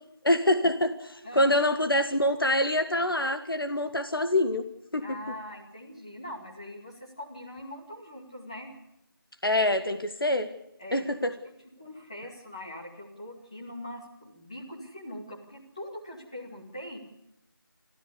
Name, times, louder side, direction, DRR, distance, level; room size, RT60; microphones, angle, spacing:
voice 1, 0.2-4.6 4.9-5.1 9.4-10.5 10.9-11.3, left 1 dB, 70° left, 8 dB, 1.6 m, -25 dB
voice 2, 1.2-1.6 5.0-8.7 10.8-11.1 11.8-17.0, left 1 dB, 15° left, -3 dB, 2.3 m, -42 dB
26.5 x 14.0 x 8.3 m, 0.84 s
figure-of-eight pair, 180°, 12 cm